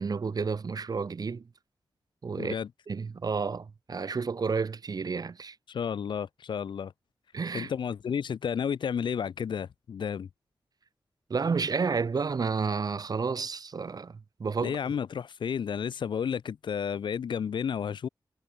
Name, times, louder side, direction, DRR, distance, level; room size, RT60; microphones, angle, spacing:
voice 1, 0.0-1.4 2.2-2.6 2.9-5.6 7.3-7.7 11.3-14.8, right 5 dB, 55° right, 2.1 m, -31 dB
voice 2, 2.4-2.7 5.7-6.9 7.5-10.3 14.6-18.1, left 7 dB, 85° left, 0.7 m, -32 dB
wide cardioid pair, 105°, 8 cm